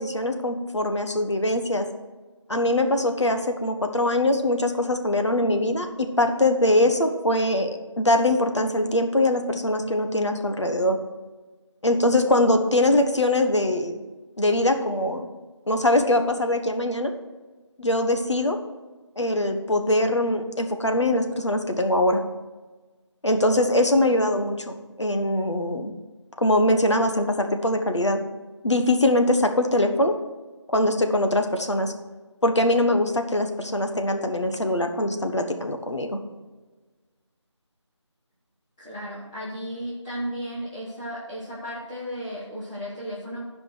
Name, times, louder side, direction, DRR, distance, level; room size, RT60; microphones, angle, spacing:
voice 1, 0.0-1.9 2.5-7.7 8.0-11.0 11.8-14.0 14.4-15.3 15.7-17.1 17.8-18.6 19.2-22.2 23.2-25.9 26.4-28.2 28.6-30.1 30.7-31.9 32.4-36.2, left 1 dB, 70° left, 5 dB, 1.3 m, -22 dB
voice 2, 38.8-43.4, equal, 10° left, -12 dB, 1.0 m, -34 dB
11.5 x 5.2 x 6.3 m, 1.3 s
figure-of-eight pair, 165°, 16 cm